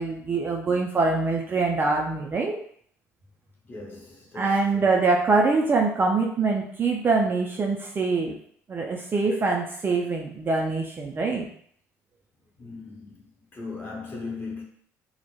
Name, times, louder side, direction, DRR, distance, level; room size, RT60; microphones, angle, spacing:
voice 1, 0.0-2.6 4.4-8.4 8.7-11.5, right 3 dB, 25° right, 0.3 m, -24 dB
voice 2, 3.6-5.0 12.6-13.2 13.5-14.6, left 3 dB, 25° left, 0.8 m, -38 dB
2.1 x 2.1 x 2.9 m
figure-of-eight pair, 55°, 8 cm